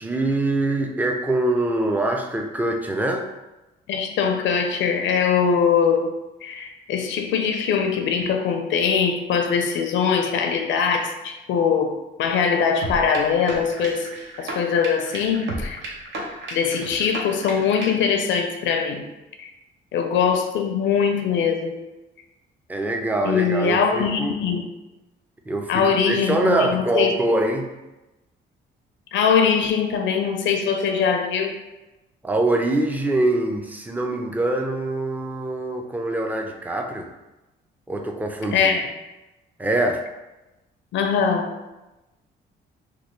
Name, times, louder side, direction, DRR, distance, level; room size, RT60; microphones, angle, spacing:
voice 1, 0.0-3.3 22.7-24.3 25.5-27.7 32.2-37.1 37.9-38.7 39.6-40.0, right 1 dB, 10° right, 3 dB, 0.4 m, -24 dB
voice 2, 3.9-6.1 6.4-14.1 14.4-15.8 16.5-19.0 19.4-19.5 19.9-21.8 23.2-24.6 25.7-27.1 29.1-31.6 38.5-38.8 40.9-41.5, left 6 dB, 70° left, 5 dB, 0.4 m, -22 dB
sound 1, 12.8-18.1, right 1 dB, 65° right, 0.7 m, -33 dB
3.1 x 2.2 x 3.1 m, 1.0 s
cardioid pair, 90°, 20 cm